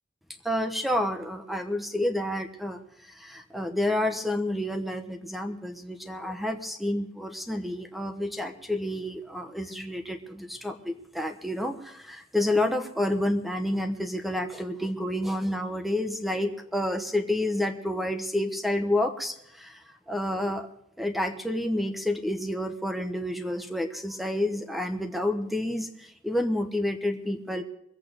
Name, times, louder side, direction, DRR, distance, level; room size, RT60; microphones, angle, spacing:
voice 1, 0.4-20.7 21.0-27.6, left 1 dB, ahead, 7 dB, 1.0 m, -29 dB
22.5 x 8.5 x 5.0 m, 0.78 s
head